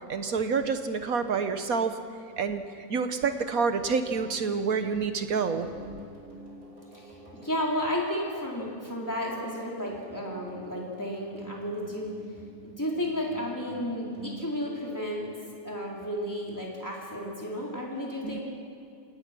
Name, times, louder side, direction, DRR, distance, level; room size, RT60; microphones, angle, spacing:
voice 1, 0.1-2.0 2.4-2.6 2.9-5.7 18.2-18.4, right 5 dB, 60° right, 8 dB, 1.4 m, -28 dB
sound 1, 2.1-15.8, equal, 80° right, 5.1 m, -49 dB
voice 2, 6.9-12.2 12.6-15.3 15.6-18.4, equal, 10° left, -4 dB, 4.2 m, -33 dB
28.0 x 18.5 x 6.2 m, 2.5 s
omnidirectional pair, 1.7 m